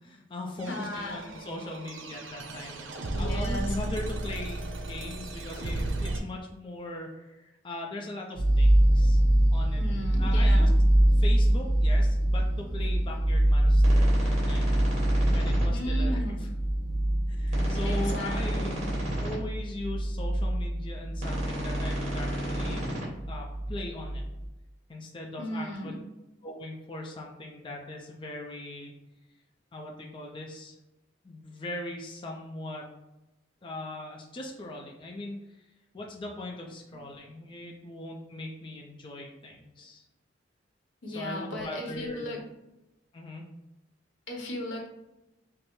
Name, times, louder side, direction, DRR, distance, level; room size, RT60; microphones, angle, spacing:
voice 1, 0.0-9.2 9.5-9.8 10.2-10.7 11.2-14.8 15.3-16.5 17.3-24.2 24.9-25.9 26.4-28.9 29.7-30.8 31.2-32.9 33.6-35.7 35.9-40.0 41.1-42.2 43.1-43.4, left 2 dB, 25° left, -1 dB, 0.5 m, -40 dB
voice 2, 0.6-1.4 3.1-3.7 9.8-10.7 15.7-16.4 17.8-18.7 25.4-26.0 41.0-42.4 44.3-44.9, left 1 dB, 75° left, 1 dB, 0.9 m, -36 dB
sound 1, 0.6-6.2, right 2 dB, 90° right, 0.5 m, -34 dB
sound 2, 8.4-24.5, right 1 dB, 65° right, 0.9 m, -24 dB
sound 3, 13.8-15.6 17.5-19.3 21.2-23.0, equal, 40° right, 1.5 m, -34 dB
5.3 x 2.0 x 3.1 m, 0.96 s
head